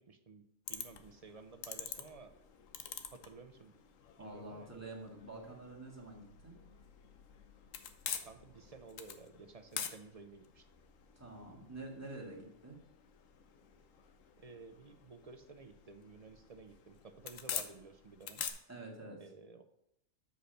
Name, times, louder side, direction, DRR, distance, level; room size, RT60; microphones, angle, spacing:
voice 1, 0.0-2.3 3.1-3.7 4.2-4.7 8.2-10.6 14.4-18.4 19.2-19.6, right 4 dB, 45° right, 8 dB, 0.5 m, -54 dB
sound 1, 0.7-18.5, left 8 dB, 85° left, 1.2 m, -47 dB
voice 2, 4.2-6.6 11.2-12.8 18.7-19.2, right 2 dB, 10° right, -3 dB, 1.9 m, -48 dB
6.5 x 5.2 x 6.5 m, 0.83 s
omnidirectional pair, 1.3 m